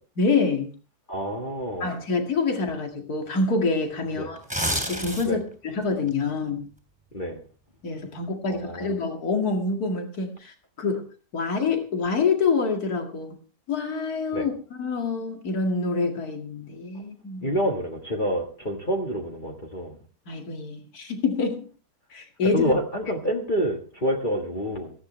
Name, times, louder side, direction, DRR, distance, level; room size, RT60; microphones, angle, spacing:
voice 1, 0.2-0.7 1.8-4.4 4.9-6.7 7.8-11.0 11.3-13.4 13.7-17.6 20.3-21.7 22.1-22.7, left 4 dB, 60° left, 4 dB, 2.6 m, -26 dB
voice 2, 1.1-1.9 4.2-4.3 5.3-5.4 7.1-7.4 8.5-8.9 14.3-14.5 17.4-20.0 22.5-24.9, equal, 30° left, 2 dB, 1.6 m, -27 dB
sound 1, 4.4-5.5 5.9-6.1, equal, 5° right, 3.0 m, -28 dB
17.5 x 14.5 x 3.2 m, 0.37 s
omnidirectional pair, 1.8 m